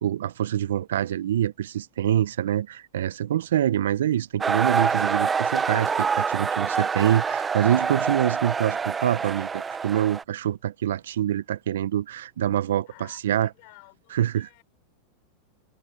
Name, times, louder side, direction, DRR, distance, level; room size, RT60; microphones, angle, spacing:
voice 1, 0.0-12.9 13.2-13.5 14.1-14.5, right 11 dB, 75° right, 1.2 m, -25 dB
sound 1, 4.4-10.2, right 5 dB, 20° right, 1.1 m, -26 dB
voice 2, 12.9-14.6, left 36 dB, 55° left, 6.4 m, -52 dB
hypercardioid pair, 95°, 0 cm